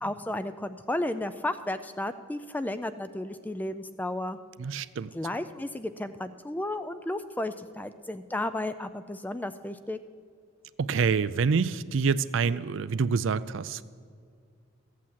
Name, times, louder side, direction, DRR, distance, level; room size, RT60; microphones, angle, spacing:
voice 1, 0.0-4.4 5.1-10.0, left 1 dB, 10° left, 11 dB, 0.3 m, -33 dB
voice 2, 4.6-5.1 10.8-13.8, right 5 dB, 65° right, 15 dB, 0.4 m, -26 dB
15.0 x 8.5 x 7.4 m, 2.2 s
head